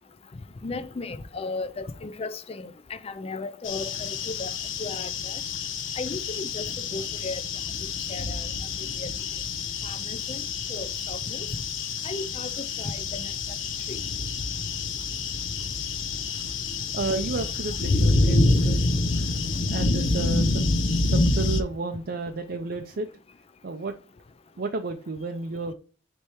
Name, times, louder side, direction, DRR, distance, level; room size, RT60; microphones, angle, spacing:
voice 1, 0.6-4.5 4.8-5.4 6.0-7.4 8.1-8.5 9.0-9.1 9.8-10.4 10.7-11.5 12.0-13.3 13.9-14.0, left 3 dB, 30° left, 0.4 m, -35 dB
sound 1, 3.6-21.6, left 3 dB, 65° left, 0.8 m, -27 dB
voice 2, 16.9-18.8 19.7-20.6 21.0-23.1 23.6-23.9 24.6-25.7, right 3 dB, 50° right, 0.5 m, -32 dB
9.5 x 3.4 x 3.0 m
head